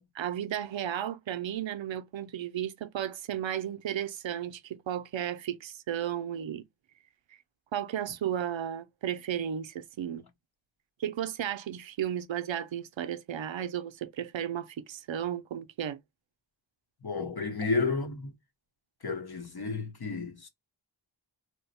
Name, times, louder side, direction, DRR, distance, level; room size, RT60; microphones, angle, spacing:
voice 1, 0.1-6.6 7.7-10.2 11.0-16.0, right 10 dB, 75° right, 0.5 m, -34 dB
voice 2, 17.0-18.3 19.0-20.5, left 4 dB, 55° left, 0.9 m, -31 dB
3.0 x 2.1 x 4.1 m
wide cardioid pair, 50°, 45 cm